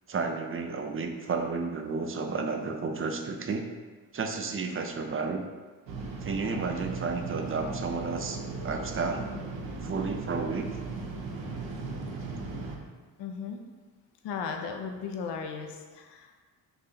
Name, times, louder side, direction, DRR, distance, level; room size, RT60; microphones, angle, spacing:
voice 1, 0.1-3.7 4.1-5.5 6.2-9.3 9.8-10.7, right 4 dB, 25° right, 4 dB, 0.5 m, -32 dB
sound 1, 5.9-12.8, right 3 dB, 60° right, 0.9 m, -37 dB
voice 2, 13.2-13.6 14.2-16.4, left 6 dB, 55° left, 4 dB, 0.7 m, -36 dB
4.0 x 2.7 x 4.2 m, 1.4 s
hypercardioid pair, 40°, 50 cm